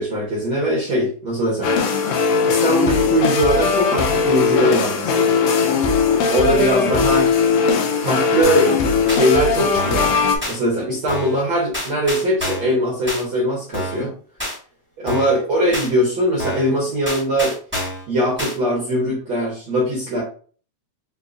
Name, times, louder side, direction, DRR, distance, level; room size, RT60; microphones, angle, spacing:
voice 1, 0.0-1.7 2.5-5.4 6.2-7.3 8.0-8.7 9.0-10.1 10.5-14.1 15.0-17.5 18.1-20.2, equal, 80° right, -4 dB, 1.1 m, -21 dB
sound 1, 1.6-10.4, left 5 dB, 80° left, 1.6 m, -19 dB
sound 2, 8.4-8.7 9.1-9.2 9.7-10.1 10.4-10.6 11.1-11.4 11.7-12.7 13.1-13.2 13.7-14.1 14.4-14.6 15.1-15.4 15.7-15.9 16.4-16.7 17.0-18.0 18.4-18.5, left 1 dB, 10° right, 0.6 m, -27 dB
5.1 x 2.4 x 2.4 m, 0.43 s
omnidirectional pair, 3.7 m